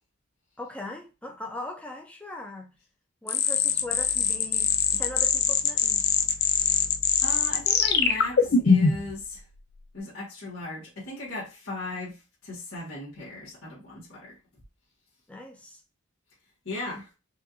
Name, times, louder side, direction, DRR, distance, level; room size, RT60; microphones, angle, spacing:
voice 1, 0.6-2.7 3.2-6.1 15.3-15.8, left 1 dB, 5° left, 0.7 m, -40 dB
sound 1, 3.3-9.1, left 6 dB, 45° left, 0.5 m, -23 dB
voice 2, 7.2-9.4 9.9-14.3 16.6-17.1, left 2 dB, 75° left, 1.6 m, -37 dB
4.7 x 2.5 x 2.9 m
head